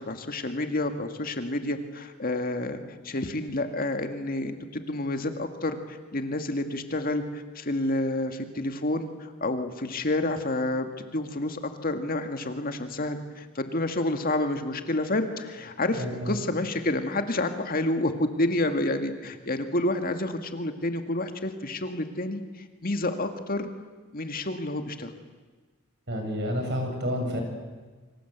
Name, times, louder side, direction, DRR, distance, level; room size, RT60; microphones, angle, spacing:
voice 1, 0.0-23.7 24.1-25.1, left 2 dB, 45° left, 7 dB, 2.0 m, -29 dB
voice 2, 15.9-16.4 26.1-27.4, equal, 55° right, 3 dB, 7.0 m, -29 dB
28.0 x 25.5 x 8.2 m, 1.3 s
head